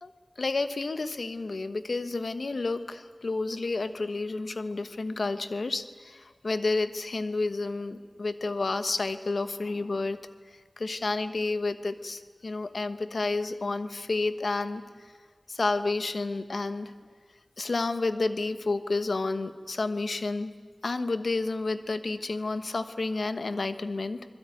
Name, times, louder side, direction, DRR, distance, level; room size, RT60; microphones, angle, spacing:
voice 1, 0.4-10.2 10.8-14.8 15.5-16.9 17.6-20.5 20.8-24.3, left 3 dB, 85° left, 10 dB, 1.2 m, -30 dB
25.0 x 21.0 x 9.3 m, 1.5 s
wide cardioid pair, 55°, 0 cm